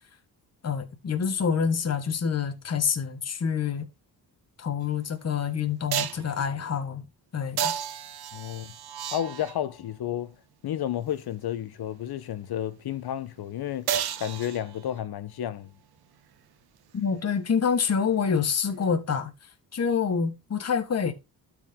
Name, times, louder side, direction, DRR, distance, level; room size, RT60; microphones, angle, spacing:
voice 1, 0.6-3.9 4.6-7.0 7.3-7.7 16.9-19.3 19.7-21.1, left 6 dB, 40° left, 1.5 m, -27 dB
sound 1, 4.8-4.9 5.9-6.3 7.6-9.7 13.9-15.0 18.8-18.9, right 9 dB, 75° right, 1.0 m, -32 dB
voice 2, 8.3-8.7 9.1-10.3 10.6-13.9 14.2-15.7, left 11 dB, 70° left, 1.0 m, -31 dB
12.5 x 5.0 x 3.7 m
wide cardioid pair, 130°, 39 cm